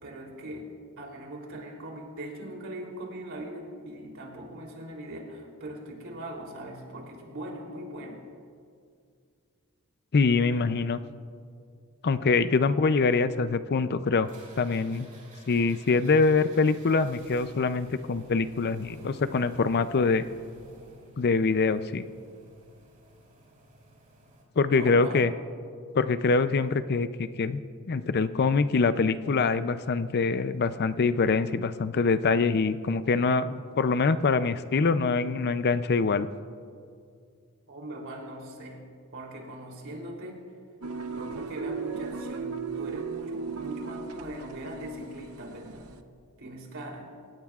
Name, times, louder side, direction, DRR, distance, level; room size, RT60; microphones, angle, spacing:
voice 1, 0.0-8.2 24.7-25.2 37.7-38.8 39.1-40.4 41.1-45.9 46.4-47.1, right 1 dB, 65° right, 0 dB, 3.2 m, -40 dB
voice 2, 10.1-11.0 12.0-14.3 14.6-15.1 15.5-20.2 21.2-22.0 24.6-25.3 25.9-27.6 27.9-36.3, left 4 dB, 50° left, 12 dB, 0.5 m, -24 dB
sound 1, 14.2-24.4, right 1 dB, 40° right, 3.8 m, -52 dB
sound 2, 40.8-46.0, right 5 dB, 80° right, 0.8 m, -36 dB
28.0 x 16.5 x 2.4 m, 2.3 s
head